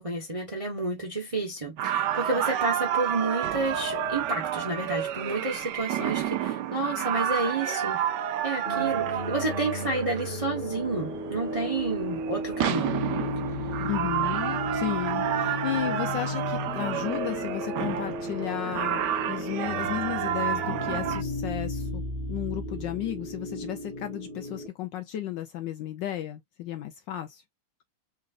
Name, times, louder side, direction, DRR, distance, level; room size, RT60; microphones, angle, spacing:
voice 1, 0.0-8.0 8.4-13.0, right 2 dB, 25° right, 0.7 m, -30 dB
sound 1, 1.8-21.2, right 10 dB, 75° right, 1.0 m, -30 dB
sound 2, 8.6-24.7, left 1 dB, 35° left, 1.1 m, -34 dB
voice 2, 13.8-22.0 22.3-27.4, left 12 dB, 70° left, 1.1 m, -34 dB
4.1 x 2.5 x 2.4 m
omnidirectional pair, 2.3 m